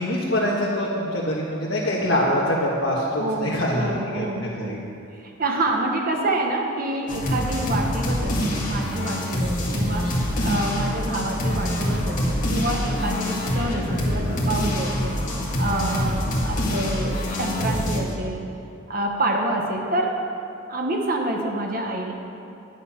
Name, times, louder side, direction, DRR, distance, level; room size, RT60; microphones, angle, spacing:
voice 1, 0.0-4.8, left 1 dB, 60° left, -6 dB, 1.6 m, -24 dB
voice 2, 3.2-4.8 5.2-15.2 15.6-18.4 18.9-20.2 20.7-22.1, right 1 dB, 40° right, 1 dB, 1.1 m, -27 dB
sound 1, 7.1-18.0, left 1 dB, 40° left, 1.8 m, -25 dB
11.0 x 9.4 x 5.8 m, 2.6 s
head